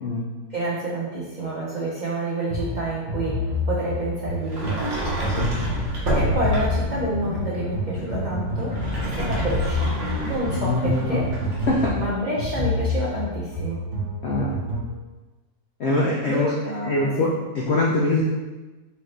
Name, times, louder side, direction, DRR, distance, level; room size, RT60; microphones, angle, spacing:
voice 1, 0.5-5.3 6.1-8.8 9.0-10.0 10.2-11.3 11.9-13.8 16.3-17.3, right 1 dB, 80° right, -6 dB, 0.4 m, -28 dB
sound 1, 2.5-15.0, left 1 dB, 35° right, 0.9 m, -28 dB
Sliding door, 4.4-7.0 8.6-11.8, equal, 60° right, 1.4 m, -28 dB
sound 2, 6.0-11.7, left 1 dB, 20° left, 1.5 m, -35 dB
voice 2, 10.6-11.2 11.7-11.9 14.2-14.6 15.8-16.5 16.8-17.3 17.5-18.2, left 2 dB, 75° left, -4 dB, 0.6 m, -23 dB
4.4 x 2.8 x 3.2 m, 1.2 s
omnidirectional pair, 1.7 m